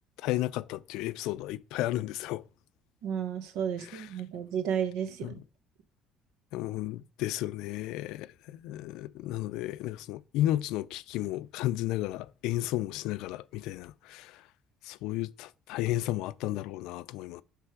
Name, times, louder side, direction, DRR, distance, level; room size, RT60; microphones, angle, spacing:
voice 1, 0.2-2.4 3.8-4.1 5.2-5.3 6.5-14.4 14.8-17.4, left 15 dB, 80° left, 0.4 m, -33 dB
voice 2, 3.0-5.4, right 8 dB, 85° right, 1.1 m, -32 dB
8.1 x 3.3 x 6.0 m
cardioid pair, 180°, 0 cm